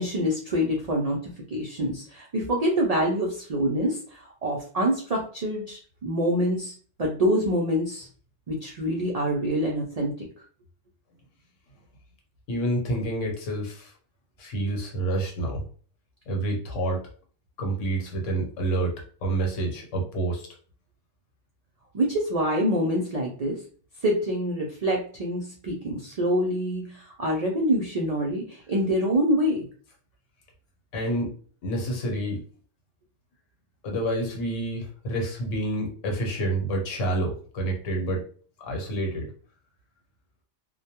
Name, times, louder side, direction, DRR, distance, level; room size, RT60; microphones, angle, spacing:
voice 1, 0.0-6.7 7.0-8.1 8.5-10.3 21.9-23.6 24.0-29.6, equal, 70° right, -1 dB, 0.3 m, -26 dB
voice 2, 12.5-13.9 14.4-15.6 16.3-17.0 17.6-19.0 19.2-20.5 30.9-31.3 31.6-32.4 33.8-38.2 38.7-39.3, right 1 dB, 85° left, 1 dB, 1.1 m, -28 dB
2.2 x 2.2 x 2.8 m, 0.43 s
omnidirectional pair, 1.3 m